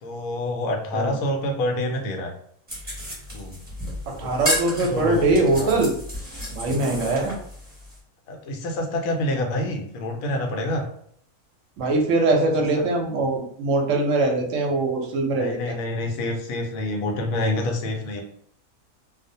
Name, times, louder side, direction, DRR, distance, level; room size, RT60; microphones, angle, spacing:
voice 1, 0.0-2.3 3.3-3.6 4.2-4.3 4.9-5.8 7.0-7.3 8.3-10.8 12.8-12.9 15.4-18.2, left 1 dB, 75° left, 3 dB, 1.0 m, -27 dB
sound 1, 2.7-8.0, equal, 10° right, 0.9 m, -32 dB
voice 2, 4.2-5.9 6.5-7.4 11.8-15.8, right 2 dB, 70° right, 1 dB, 0.9 m, -22 dB
2.4 x 2.0 x 2.6 m, 0.64 s
omnidirectional pair, 1.5 m